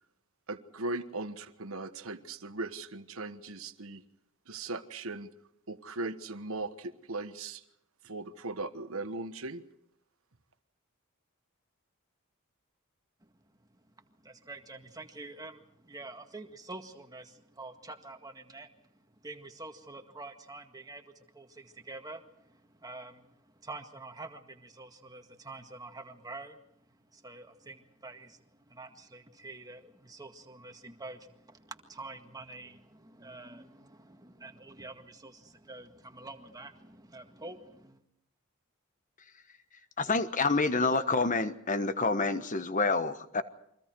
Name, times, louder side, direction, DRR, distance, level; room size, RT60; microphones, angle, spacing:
voice 1, 0.5-4.0 4.5-5.3 5.7-7.6 8.0-9.6, right 2 dB, 70° right, 10 dB, 1.3 m, -38 dB
voice 2, 14.2-18.7 19.2-26.6 27.1-38.0, right 2 dB, 15° right, 5 dB, 1.8 m, -47 dB
voice 3, 40.0-43.4, left 3 dB, 35° left, 11 dB, 1.2 m, -28 dB
30.0 x 24.0 x 4.6 m, 0.75 s
head